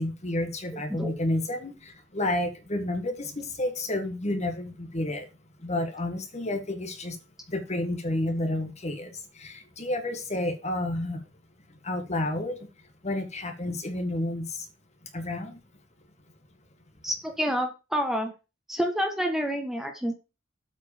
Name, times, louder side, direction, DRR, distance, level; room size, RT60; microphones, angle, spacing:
voice 1, 0.0-5.3 5.6-7.2 7.5-11.2 11.7-14.7 15.1-15.6, left 1 dB, 35° left, 6 dB, 1.7 m, -30 dB
voice 2, 0.7-1.1 17.0-18.3 18.7-20.2, equal, ahead, 4 dB, 1.4 m, -28 dB
8.1 x 4.7 x 6.9 m, 0.29 s
head